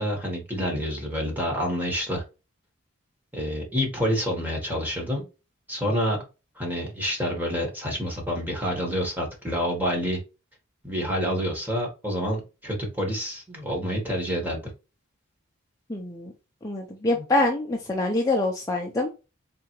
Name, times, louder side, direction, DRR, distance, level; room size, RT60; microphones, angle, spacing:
voice 1, 0.0-2.2 3.3-5.2 5.7-6.2 6.6-10.2 10.8-14.6 17.1-17.2, equal, 10° right, 0 dB, 1.3 m, -28 dB
voice 2, 15.9-16.3 16.6-19.1, left 2 dB, 15° left, 0 dB, 0.5 m, -25 dB
3.8 x 3.4 x 3.1 m, 0.30 s
head